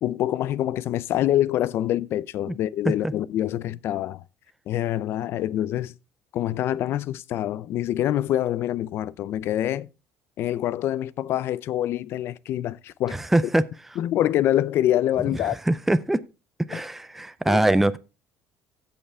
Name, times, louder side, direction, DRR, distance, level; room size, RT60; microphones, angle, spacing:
voice 1, 0.0-4.2 4.7-5.9 6.3-9.9 10.4-13.2 14.0-15.6 16.7-16.8 17.5-17.6, left 12 dB, 55° left, 0.4 m, -25 dB
voice 2, 13.1-13.6 15.4-16.2 16.7-18.0, right 1 dB, 5° right, 0.4 m, -22 dB
15.0 x 5.6 x 3.4 m
cardioid pair, 140°, 5 cm